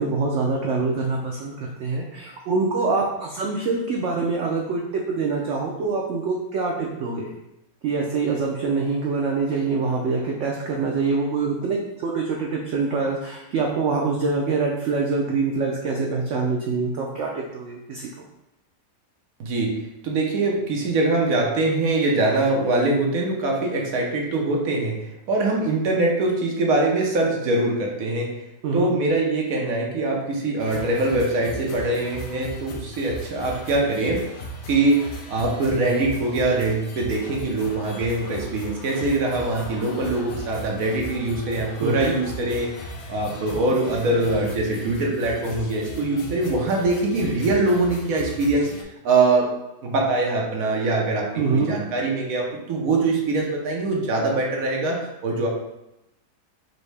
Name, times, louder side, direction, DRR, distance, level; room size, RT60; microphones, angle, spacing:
voice 1, 0.0-7.3 7.8-18.1 28.6-28.9 41.8-42.2 51.4-51.8, right 4 dB, 80° right, -1 dB, 0.6 m, -25 dB
voice 2, 19.4-19.7 20.0-28.3 28.7-34.2 34.7-42.7 43.1-48.7 49.0-49.5 49.8-55.5, right 2 dB, 60° right, -1 dB, 1.1 m, -23 dB
sound 1, 30.6-48.8, equal, 80° left, 0.6 m, -37 dB
4.1 x 2.7 x 3.3 m, 0.91 s
omnidirectional pair, 1.8 m